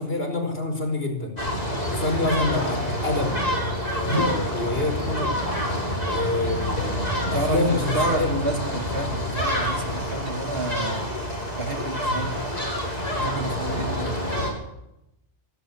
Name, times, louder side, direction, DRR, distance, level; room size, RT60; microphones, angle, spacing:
voice 1, 0.0-1.4 1.9-5.4 6.0-8.3, left 2 dB, 55° left, 4 dB, 5.2 m, -27 dB
sound 1, 1.4-14.5, equal, 35° left, 6.1 m, -27 dB
voice 2, 7.2-11.1 11.5-12.5 13.1-14.2, right 2 dB, 55° right, 6 dB, 2.6 m, -30 dB
26.0 x 12.0 x 8.6 m, 0.85 s
omnidirectional pair, 1.2 m